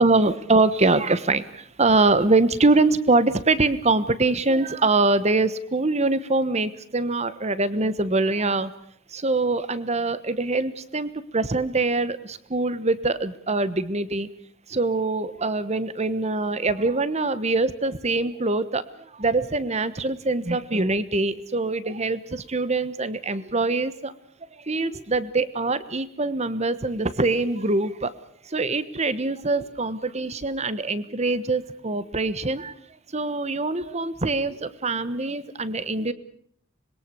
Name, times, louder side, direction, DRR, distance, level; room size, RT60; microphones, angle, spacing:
voice 1, 0.0-8.7 9.1-14.3 14.7-18.8 19.1-24.1 24.7-28.1 28.5-32.7 33.1-36.1, right 3 dB, 30° right, 15 dB, 1.2 m, -23 dB
26.0 x 21.5 x 6.9 m, 0.63 s
head